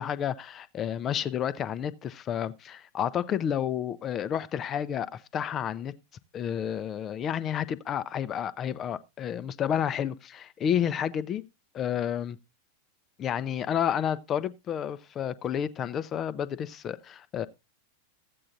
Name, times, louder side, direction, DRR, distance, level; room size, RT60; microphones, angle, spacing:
voice 1, 0.0-5.9 6.3-11.4 11.7-12.4 13.2-17.5, left 9 dB, 30° left, 0.5 m, -30 dB
14.0 x 8.6 x 2.5 m
figure-of-eight pair, 90°, 0 cm